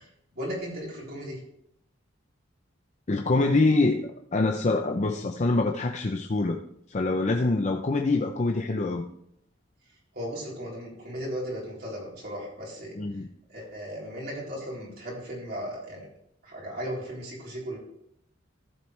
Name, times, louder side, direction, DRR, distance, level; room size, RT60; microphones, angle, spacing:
voice 1, 0.3-1.4 10.1-12.9 13.5-16.1 16.4-17.8, equal, 55° right, -4 dB, 3.9 m, -36 dB
voice 2, 3.1-6.6 6.9-9.0 13.0-13.3, left 2 dB, 40° left, 4 dB, 0.6 m, -25 dB
14.5 x 7.4 x 3.3 m, 0.73 s
head